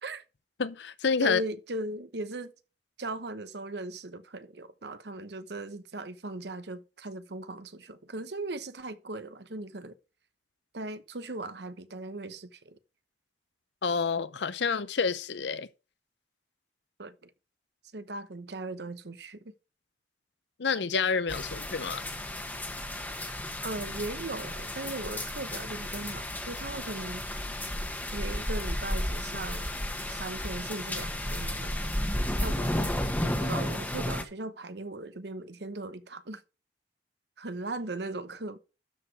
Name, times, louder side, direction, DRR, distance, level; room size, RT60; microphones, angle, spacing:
voice 1, 0.6-1.4 13.8-15.7 20.6-22.0, left 5 dB, 80° left, 0.7 m, -28 dB
voice 2, 1.2-2.5 3.0-9.9 10.7-12.8 17.0-17.3 17.9-19.5 23.6-27.2 28.1-29.7 30.1-31.9 32.4-32.9 33.2-36.4 37.4-38.6, right 2 dB, 70° right, 1.0 m, -38 dB
sound 1, 21.3-34.2, left 1 dB, 10° left, 1.3 m, -33 dB
12.5 x 5.0 x 4.6 m
head